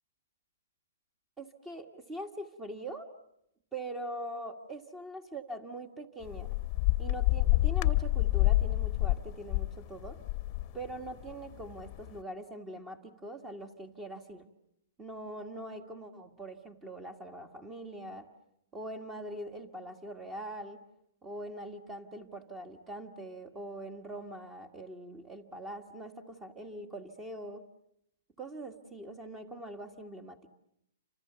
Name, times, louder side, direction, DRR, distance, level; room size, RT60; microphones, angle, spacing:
voice 1, 1.4-3.1 3.7-6.6 7.0-10.2 10.7-14.5 15.0-18.3 18.7-20.8 21.2-27.6 28.4-30.4, right 1 dB, 15° right, 8 dB, 1.7 m, -43 dB
sound 1, 6.2-9.7 10.0-11.3 11.6-12.1, left 19 dB, 35° left, 1.0 m, -28 dB
29.5 x 26.0 x 6.9 m, 0.78 s
hypercardioid pair, 140°, 0 cm